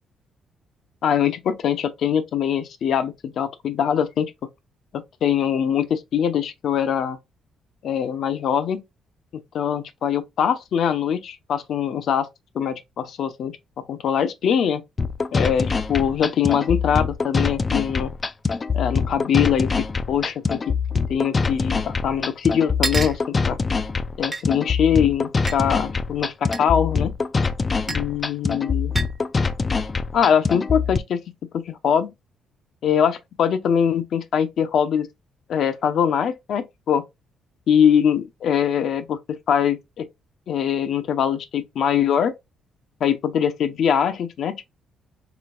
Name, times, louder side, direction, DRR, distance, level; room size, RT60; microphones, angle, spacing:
voice 1, 1.0-4.3 4.9-7.2 7.8-8.8 9.3-12.3 12.5-13.5 13.9-14.8 15.3-18.1 18.7-20.6 21.1-23.6 24.2-27.1 27.9-28.9 30.1-31.2 31.7-32.1 32.8-35.1 35.5-37.0 37.7-40.1 40.5-42.3 43.0-44.6, left 8 dB, 65° left, 0.7 m, -22 dB
sound 1, 15.0-31.0, left 4 dB, 30° left, 0.4 m, -24 dB
sound 2, 22.8-23.2 24.3-24.4 25.5-25.6 26.5-26.7 27.9-28.1 29.0-29.2, right 3 dB, 20° right, 0.8 m, -28 dB
5.0 x 3.3 x 2.6 m
cardioid pair, 105°, 0 cm